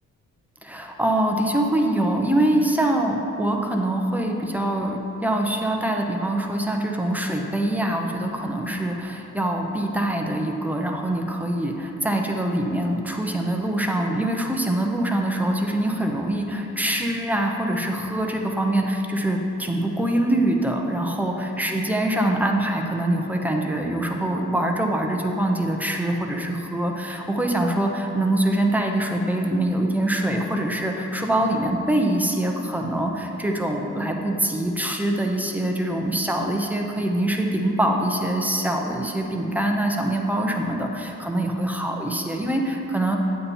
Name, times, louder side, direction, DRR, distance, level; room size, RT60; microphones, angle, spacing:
voice 1, 0.6-43.2, right 1 dB, 5° right, 1 dB, 0.9 m, -24 dB
8.5 x 4.3 x 7.2 m, 2.9 s
cardioid pair, 90°, 30 cm